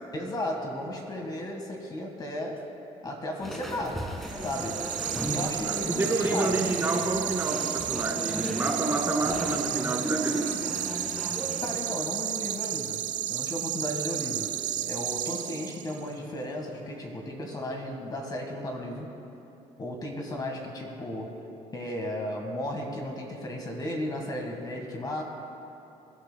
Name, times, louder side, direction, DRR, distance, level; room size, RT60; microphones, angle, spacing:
voice 1, 0.1-2.6 3.0-4.1 4.4-4.8 5.2-6.5 11.6-19.1 19.8-21.3 21.7-25.2, left 1 dB, 30° left, 1 dB, 1.6 m, -35 dB
sound 1, 3.4-11.8, right 1 dB, ahead, 1.6 m, -35 dB
sound 2, 4.3-16.1, right 11 dB, 85° right, 0.7 m, -32 dB
voice 2, 5.6-10.6, right 2 dB, 20° right, 0 dB, 1.9 m, -29 dB
26.0 x 12.0 x 2.2 m, 2.9 s
cardioid pair, 125°, 12 cm